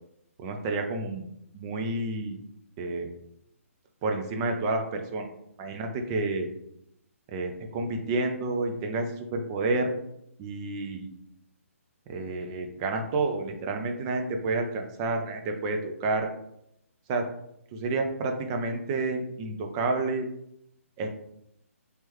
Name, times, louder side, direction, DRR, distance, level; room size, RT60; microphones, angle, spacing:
voice 1, 0.4-1.2 1.5-2.4 2.8-3.1 4.0-5.3 5.6-6.5 7.3-10.0 10.4-11.1 12.1-16.3 17.1-17.2 17.7-20.3 21.0-21.1, right 3 dB, 20° right, 4 dB, 0.5 m, -29 dB
4.4 x 3.3 x 3.0 m, 0.78 s
figure-of-eight pair, 135°, 8 cm